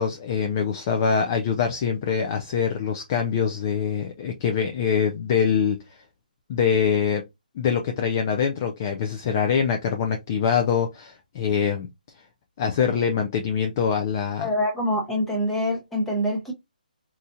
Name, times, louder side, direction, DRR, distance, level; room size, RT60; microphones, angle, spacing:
voice 1, 0.0-5.8 6.5-7.2 7.6-11.9 12.6-14.5, left 7 dB, 20° left, 0.3 m, -24 dB
voice 2, 14.4-16.5, equal, 5° left, 0.8 m, -25 dB
4.2 x 2.4 x 2.6 m
hypercardioid pair, 170°, 5 cm